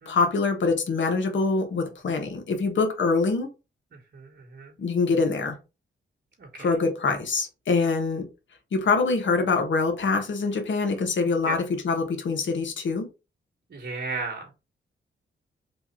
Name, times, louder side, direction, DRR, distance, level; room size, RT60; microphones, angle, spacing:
voice 1, 0.1-3.5 4.8-5.6 6.6-8.3 8.7-13.1, left 4 dB, 65° left, 1.2 m, -24 dB
voice 2, 4.1-4.7 6.4-6.7 11.5-11.6 13.7-14.5, right 4 dB, 55° right, 1.2 m, -34 dB
3.4 x 2.4 x 4.3 m
cardioid pair, 70°, 21 cm